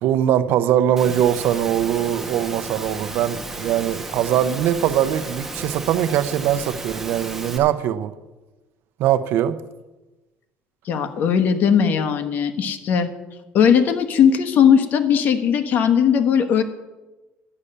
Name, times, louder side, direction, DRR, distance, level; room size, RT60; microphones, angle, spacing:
voice 1, 0.0-8.1 9.0-9.6, right 11 dB, 70° right, 0.7 m, -21 dB
Engine / Mechanisms, 1.0-7.6, right 2 dB, 10° right, 2.0 m, -33 dB
voice 2, 10.9-13.1 13.5-16.6, left 7 dB, 55° left, 1.3 m, -18 dB
11.5 x 9.8 x 6.7 m
cardioid pair, 135°, 4 cm